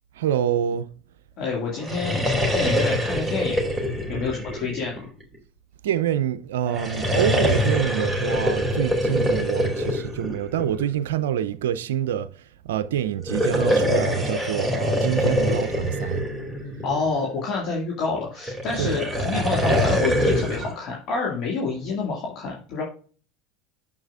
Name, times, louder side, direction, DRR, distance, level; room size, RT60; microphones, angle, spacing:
voice 1, 0.2-0.9 5.8-12.3 12.6-16.3 18.8-19.0, right 10 dB, 75° right, 0.4 m, -26 dB
voice 2, 1.4-3.7 4.1-5.1 16.8-22.8, left 4 dB, 55° left, 2.0 m, -28 dB
sound 1, 1.7-5.4 6.7-11.0 13.2-17.2 18.5-20.7, equal, ahead, 2.4 m, -24 dB
7.9 x 7.1 x 2.4 m
hypercardioid pair, 80°, 0 cm